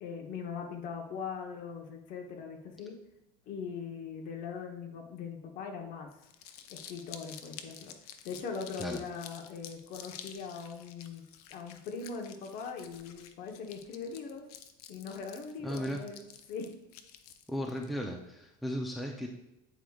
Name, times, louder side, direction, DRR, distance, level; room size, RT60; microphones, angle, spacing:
voice 1, 0.0-3.0 3.5-6.1 6.7-7.9 8.2-11.2 11.5-14.5 14.9-16.7, left 5 dB, 50° left, 3 dB, 1.1 m, -41 dB
Crumpling crinkling, 6.1-17.9, left 9 dB, 90° left, 0.6 m, -50 dB
voice 2, 15.6-16.0 17.5-19.3, equal, ahead, 1 dB, 0.6 m, -35 dB
8.9 x 4.8 x 2.4 m, 0.88 s
supercardioid pair, 130°, 19 cm